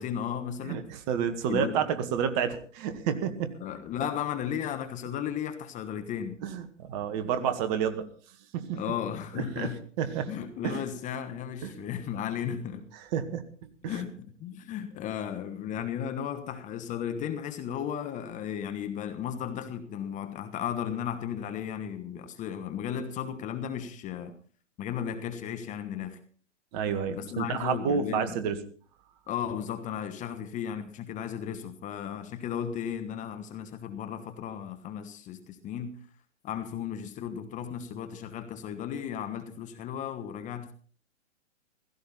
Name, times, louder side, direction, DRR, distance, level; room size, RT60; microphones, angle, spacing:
voice 1, 0.0-0.8 1.5-1.8 3.6-6.4 8.7-9.8 10.3-12.9 13.9-24.3 24.8-26.2 27.1-28.3 29.3-36.0 36.4-40.7, left 9 dB, 20° left, 1.2 m, -35 dB
voice 2, 0.6-3.5 6.4-8.0 8.5-8.8 9.3-9.7 10.0-10.3 10.6-10.8 11.6-11.8 13.1-13.4 13.8-14.0 26.7-28.6, right 8 dB, 35° right, 1.9 m, -30 dB
16.0 x 15.5 x 4.2 m
hypercardioid pair, 125°, 37 cm